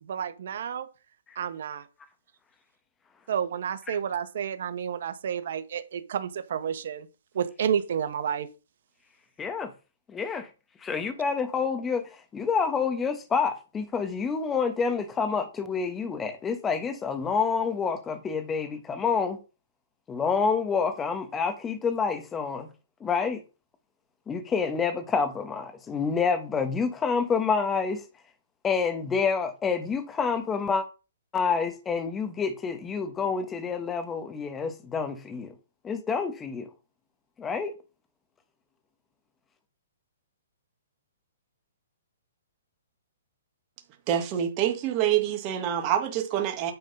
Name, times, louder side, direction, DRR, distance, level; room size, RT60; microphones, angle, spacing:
voice 1, 0.1-0.9 1.4-1.8 3.3-7.1 7.3-8.5, right 8 dB, 65° right, 1.2 m, -30 dB
voice 2, 9.4-9.7 10.1-10.5 10.8-19.4 20.1-22.7 23.0-23.4 24.3-28.0 28.6-30.9 31.3-35.5 35.8-36.7 37.4-37.7, left 5 dB, 15° left, 1.3 m, -28 dB
voice 3, 44.1-46.7, right 10 dB, 30° right, 1.7 m, -26 dB
9.5 x 3.9 x 5.4 m
hypercardioid pair, 150°, 0 cm